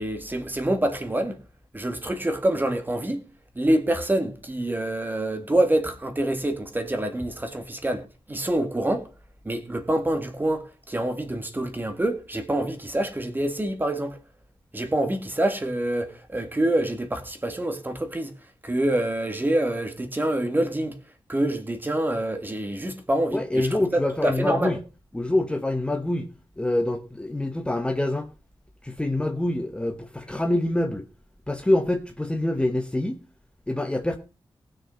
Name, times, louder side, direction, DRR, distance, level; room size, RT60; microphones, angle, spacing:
voice 1, 0.0-1.4 1.7-3.2 3.6-9.1 9.4-14.2 14.7-18.3 18.6-21.0 21.3-24.8, right 1 dB, 20° right, 1.9 m, -26 dB
voice 2, 23.3-24.8 25.1-28.3 28.8-31.1 31.5-33.2 33.7-34.2, left 1 dB, 10° left, 1.1 m, -25 dB
19.0 x 6.5 x 5.2 m
wide cardioid pair, 140°, 9 cm